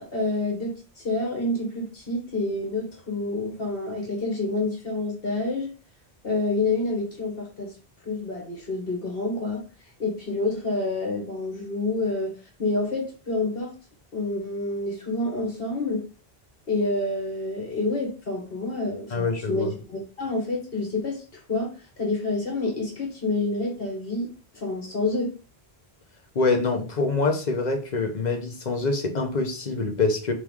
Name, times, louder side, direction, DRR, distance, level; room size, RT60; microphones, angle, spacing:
voice 1, 0.0-5.7 6.2-7.7 8.0-9.6 10.0-12.3 12.6-13.7 14.1-16.0 16.7-21.7 22.0-25.3, left 2 dB, 65° left, 0 dB, 1.5 m, -28 dB
voice 2, 19.1-19.7 26.3-30.3, left 3 dB, 45° left, 4 dB, 0.9 m, -25 dB
4.7 x 3.1 x 3.6 m, 0.36 s
omnidirectional pair, 1.0 m